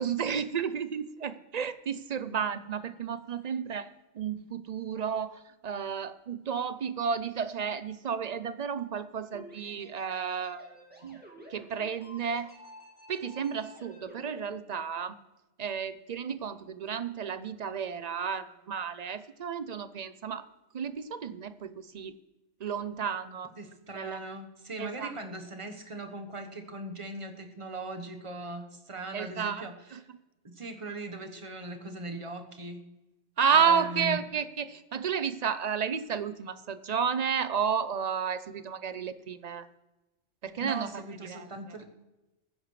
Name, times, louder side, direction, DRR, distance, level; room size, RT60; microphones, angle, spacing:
voice 1, 0.0-10.7 11.0-11.2 11.5-12.5 13.1-15.1 15.6-20.4 20.7-22.1 22.6-23.5 23.9-24.2 24.8-25.1 29.1-29.6 29.9-30.0 33.4-39.7 40.4-40.9 41.3-41.5, right 7 dB, 50° right, 13 dB, 0.5 m, -32 dB
sound 1, 9.3-14.4, equal, 10° right, 2.1 m, -51 dB
voice 2, 23.6-30.1 30.4-32.9 33.5-34.2 40.6-41.9, right 2 dB, 30° right, 5 dB, 1.1 m, -40 dB
21.5 x 9.9 x 3.2 m, 1.1 s
omnidirectional pair, 1.2 m